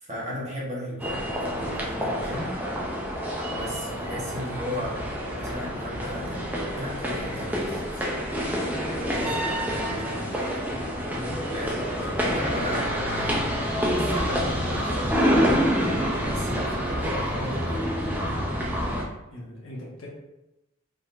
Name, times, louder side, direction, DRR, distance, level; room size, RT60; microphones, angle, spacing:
voice 1, 0.0-2.6 3.5-6.5 6.8-8.0 8.9-10.5 11.5-13.4 13.9-15.3 16.2-17.9, equal, 30° right, -5 dB, 1.3 m, -36 dB
sound 1, 1.0-19.0, equal, 10° right, 0.6 m, -27 dB
voice 2, 19.3-20.1, left 1 dB, 65° left, -4 dB, 1.5 m, -39 dB
4.8 x 4.0 x 2.6 m, 0.95 s
head